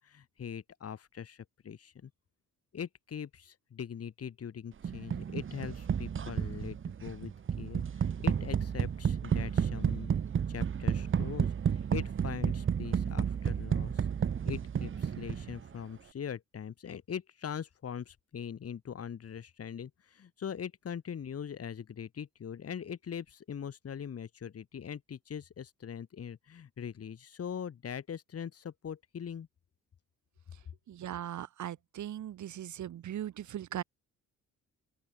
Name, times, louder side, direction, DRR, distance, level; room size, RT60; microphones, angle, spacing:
voice 1, 0.0-2.1 2.7-10.1 10.5-14.1 14.4-29.5, left 8 dB, 50° left, 4.8 m, -42 dB
sound 1, 4.8-15.7, right 7 dB, 40° right, 1.4 m, -32 dB
voice 2, 30.9-33.8, right 11 dB, 70° right, 6.8 m, -39 dB
open air
cardioid pair, 90°, 30 cm